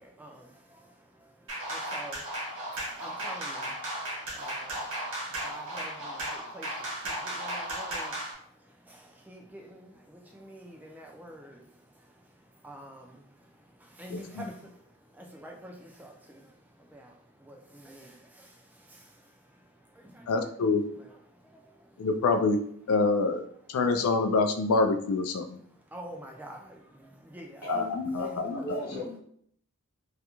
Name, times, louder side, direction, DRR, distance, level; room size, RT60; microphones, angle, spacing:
voice 1, 0.0-20.4 20.9-22.1 23.6-23.9 25.6-27.8 28.2-28.7, right 1 dB, 10° right, 1 dB, 0.3 m, -49 dB
sound 1, 1.5-8.3, right 1 dB, 60° right, 1.0 m, -35 dB
voice 2, 20.3-20.8 22.0-22.6 22.9-23.4 23.7-25.6 27.7-28.8, left 3 dB, 80° left, 7 dB, 0.3 m, -26 dB
voice 3, 27.6-29.2, left 1 dB, 40° left, -6 dB, 0.9 m, -35 dB
2.4 x 2.1 x 2.9 m, 0.64 s
head